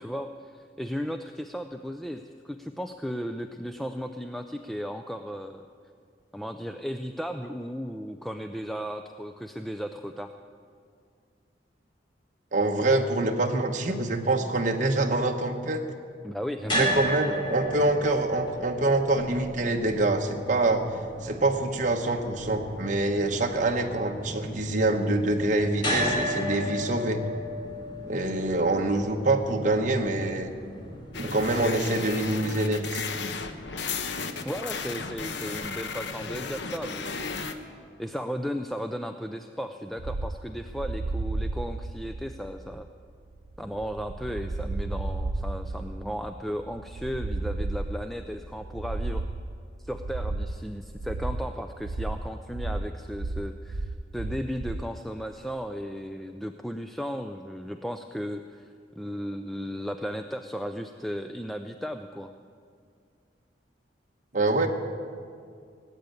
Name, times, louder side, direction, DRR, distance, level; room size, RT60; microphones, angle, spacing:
voice 1, 0.0-5.6 6.3-10.3 16.2-16.9 34.4-37.5 38.0-42.9 43.6-49.3 49.8-62.3, equal, ahead, 7 dB, 0.4 m, -35 dB
voice 2, 12.5-15.8 16.7-20.8 21.2-27.2 28.1-30.5 31.2-33.0 64.3-64.7, right 2 dB, 45° right, 2 dB, 1.0 m, -25 dB
sound 1, 16.6-32.8, equal, 30° left, 2.6 m, -34 dB
sound 2, 31.1-37.5, left 4 dB, 80° left, 1.0 m, -34 dB
sound 3, 40.0-54.9, right 2 dB, 85° right, 0.7 m, -33 dB
18.5 x 8.3 x 9.1 m, 2.3 s
head